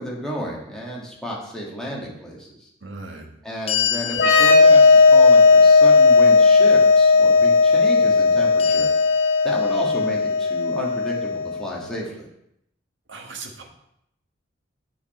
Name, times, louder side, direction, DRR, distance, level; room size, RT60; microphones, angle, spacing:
voice 1, 0.0-2.7 3.4-8.9 9.4-12.3, equal, 5° left, -4 dB, 2.0 m, -32 dB
voice 2, 2.8-3.3 13.1-13.6, right 3 dB, 70° right, 2 dB, 1.4 m, -37 dB
sound 1, 3.7-6.8 8.6-10.3, left 10 dB, 30° left, 0.5 m, -30 dB
sound 2, 4.1-11.6, left 4 dB, 55° left, 3.1 m, -15 dB
8.1 x 6.1 x 4.4 m, 0.77 s
head